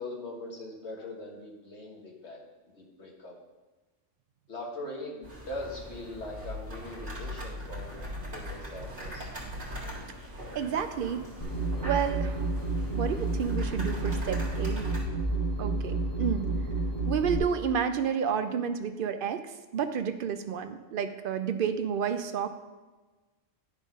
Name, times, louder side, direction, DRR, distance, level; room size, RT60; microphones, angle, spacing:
voice 1, 0.0-2.4 2.7-3.3 4.5-7.9 8.3-9.3 15.9-16.1, left 2 dB, 60° left, -2 dB, 1.8 m, -41 dB
sound 1, 5.2-15.0, equal, 40° right, 2.0 m, -41 dB
voice 2, 10.5-11.2 11.8-12.5 12.9-15.0 15.6-16.5 17.1-22.5, right 7 dB, 60° right, 9 dB, 0.6 m, -30 dB
sound 2, 11.4-17.4, right 2 dB, 20° left, 1.1 m, -30 dB
10.5 x 3.7 x 5.2 m, 1.2 s
omnidirectional pair, 1.3 m